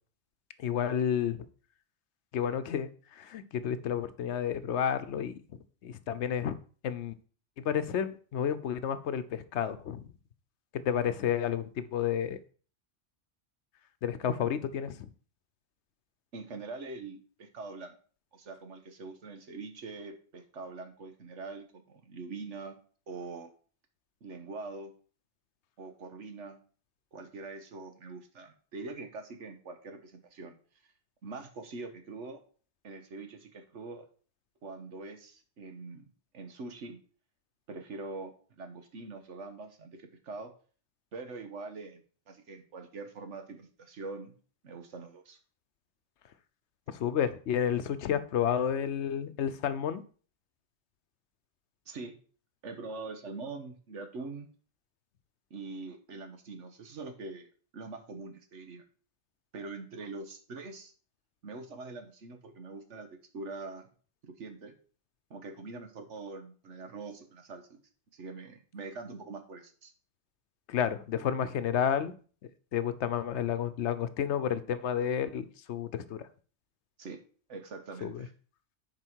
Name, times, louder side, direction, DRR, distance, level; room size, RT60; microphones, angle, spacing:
voice 1, 0.6-1.4 2.3-6.6 6.8-7.1 7.6-10.1 10.8-12.4 14.0-15.1 46.9-50.0 70.7-72.1 72.7-76.3 78.0-78.3, left 8 dB, 75° left, 1.0 m, -31 dB
voice 2, 16.3-18.0 18.3-22.8 23.1-23.5 24.2-24.9 25.8-26.6 27.1-30.6 31.2-32.4 32.8-34.1 34.6-36.1 36.3-37.0 37.7-40.5 41.1-44.3 44.6-45.4 51.9-52.2 52.6-54.5 55.5-57.5 57.7-58.8 59.5-60.9 61.4-63.1 63.3-63.9 64.2-64.7 65.3-67.8 68.1-69.9 77.0-77.2 77.5-78.3, right 3 dB, 90° right, 1.5 m, -43 dB
9.9 x 4.8 x 4.6 m
omnidirectional pair, 1.2 m